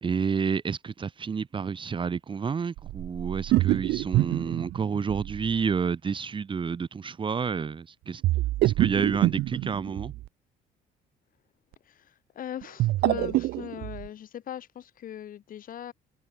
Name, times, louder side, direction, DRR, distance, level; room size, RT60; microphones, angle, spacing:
voice 1, 0.0-8.2 8.6-10.1, right 6 dB, 30° right, 1.2 m, -29 dB
sound 1, 2.8-5.6 8.2-10.3 12.6-14.1, right 17 dB, 75° right, 0.7 m, -26 dB
voice 2, 11.8-15.9, left 10 dB, 55° left, 2.6 m, -39 dB
cardioid pair, 110°, 17 cm